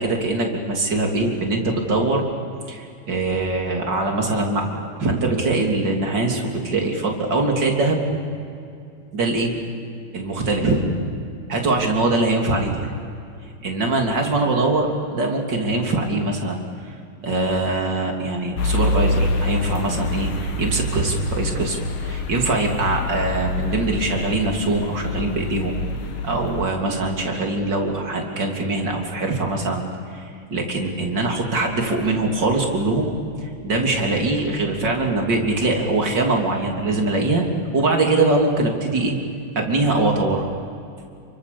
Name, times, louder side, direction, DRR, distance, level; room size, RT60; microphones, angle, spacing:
voice 1, 0.0-2.2 2.7-8.0 9.1-9.5 10.1-10.8 11.5-12.9 13.6-16.9 17.2-21.8 22.0-25.8 26.2-29.8 30.1-33.1 33.4-37.4 37.7-39.1 39.5-40.5, right 2 dB, 30° right, 1 dB, 3.4 m, -22 dB
sound 1, 18.6-26.6, left 2 dB, 70° left, 3.5 m, -26 dB
30.0 x 24.5 x 7.0 m, 2.5 s
omnidirectional pair, 4.2 m